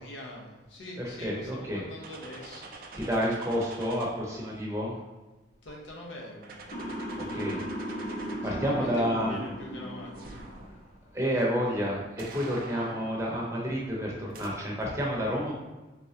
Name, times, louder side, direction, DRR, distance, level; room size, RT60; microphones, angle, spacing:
voice 1, 0.0-2.7 5.6-6.7 8.4-10.5 12.7-12.9, left 1 dB, 80° left, -2 dB, 0.9 m, -44 dB
voice 2, 1.2-1.8 2.9-5.0 7.3-7.6 8.4-9.3 11.1-15.5, equal, 15° right, -3 dB, 0.7 m, -29 dB
sound 1, 2.0-4.7 5.7-9.0 10.1-11.0 12.2-13.7 14.3-14.5, right 3 dB, 45° right, 0.4 m, -46 dB
Motor vehicle (road) / Siren, 6.7-10.8, equal, 40° left, 0.5 m, -37 dB
4.0 x 3.5 x 2.8 m, 1.2 s
head